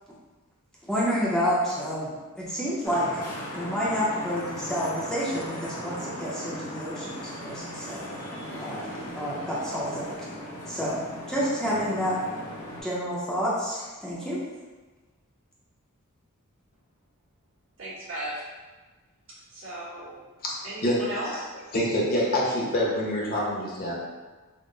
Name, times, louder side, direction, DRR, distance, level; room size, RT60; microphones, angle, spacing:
voice 1, 0.9-3.2 3.6-8.1 8.6-8.9 9.2-10.1 10.7-11.0 11.3-12.2 12.8-14.4, equal, 5° left, -8 dB, 0.5 m, -29 dB
Vehicle horn car horn honking / Traffic noise roadway noise, 2.8-12.8, equal, 80° left, 0.9 m, -37 dB
voice 2, 17.8-18.4 19.5-20.1 20.6-21.5, right 1 dB, 65° right, -7 dB, 1.2 m, -35 dB
voice 3, 20.8-21.4 21.7-23.9, left 1 dB, 40° left, -4 dB, 0.8 m, -26 dB
3.6 x 2.0 x 3.8 m, 1.3 s
head